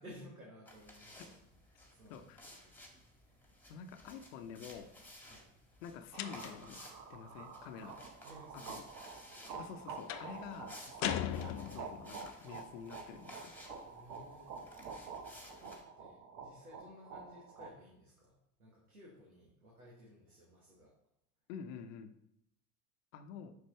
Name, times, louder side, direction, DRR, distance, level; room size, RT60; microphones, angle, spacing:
voice 1, 0.0-1.4 1.7-2.9 3.2-3.4 5.3-5.5 7.8-7.9 8.2-8.8 13.9-14.6 15.6-20.9, equal, 90° right, -4 dB, 1.7 m, -57 dB
sound 1, 0.6-15.8, left 1 dB, 5° left, 1.9 m, -56 dB
voice 2, 2.1-2.4 3.7-4.9 5.8-6.8 7.1-7.9 8.5-8.8 9.6-13.5 21.5-22.1 23.1-23.6, left 7 dB, 60° left, 8 dB, 1.0 m, -48 dB
sound 2, 6.1-17.7, right 5 dB, 45° right, 1.2 m, -48 dB
sound 3, 6.2-6.8 10.1-10.4 11.0-12.1, left 12 dB, 45° left, 0.5 m, -38 dB
9.5 x 6.1 x 3.2 m, 0.78 s
figure-of-eight pair, 70°, 43 cm